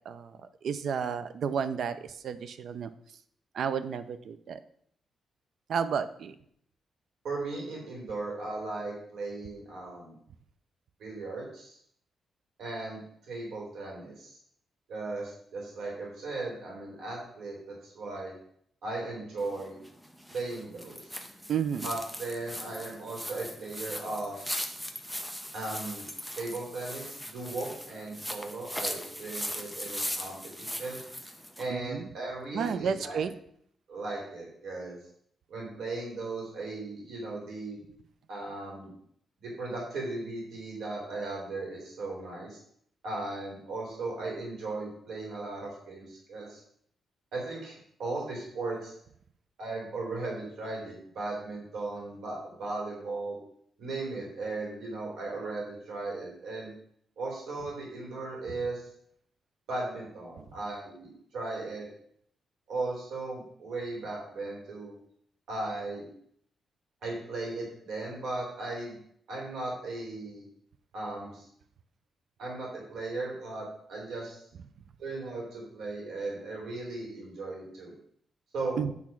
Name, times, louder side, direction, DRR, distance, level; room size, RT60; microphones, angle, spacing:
voice 1, 0.1-0.4 0.6-2.9 3.5-4.6 5.7-6.3 21.5-21.9 31.7-32.1 32.5-33.3 78.8-78.9, right 7 dB, 65° right, 12 dB, 0.6 m, -31 dB
voice 2, 7.2-10.2 11.0-11.7 12.6-13.0 13.3-14.4 14.9-18.3 18.8-19.7 20.3-21.0 21.8-24.5 25.5-26.0 26.4-31.0 31.6-33.2 33.9-35.0 35.5-37.8 38.3-38.9 39.4-42.6 43.0-46.6 47.3-48.9 49.6-53.4 53.8-56.7 57.2-58.9 59.7-61.9 62.7-64.9 65.5-66.0 67.0-69.0 69.3-70.4 70.9-71.5 72.4-74.4 75.0-77.9 78.5-78.8, right 2 dB, 80° right, -2 dB, 3.1 m, -37 dB
sound 1, 19.4-31.7, equal, 5° right, 0.7 m, -39 dB
8.6 x 3.6 x 5.9 m, 0.66 s
cardioid pair, 140°, 0 cm